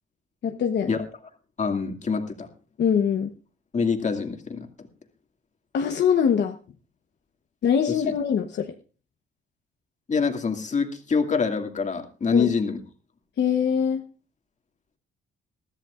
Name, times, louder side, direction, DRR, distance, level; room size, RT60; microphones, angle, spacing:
voice 1, 0.4-1.0 2.8-3.3 5.7-6.6 7.6-8.7 12.3-12.5 13.4-14.0, left 7 dB, 60° left, 4 dB, 1.1 m, -23 dB
voice 2, 1.6-2.5 3.7-4.7 7.9-8.1 10.1-12.8, left 5 dB, 35° left, 4 dB, 2.3 m, -25 dB
21.0 x 13.5 x 2.5 m, 0.36 s
cardioid pair, 90°, 20 cm